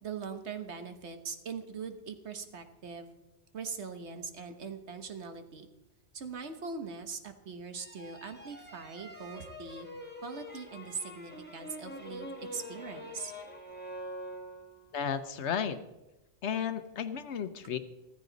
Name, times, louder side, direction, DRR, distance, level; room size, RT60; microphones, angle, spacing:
voice 1, 0.0-3.1 3.5-5.7 6.1-9.9 10.2-13.3, right 5 dB, 70° right, 7 dB, 1.4 m, -41 dB
sound 1, 7.7-14.9, equal, 10° left, 1.6 m, -45 dB
voice 2, 14.9-15.8 16.4-17.8, left 7 dB, 75° left, 11 dB, 1.1 m, -33 dB
14.5 x 13.5 x 4.0 m, 0.97 s
omnidirectional pair, 1.2 m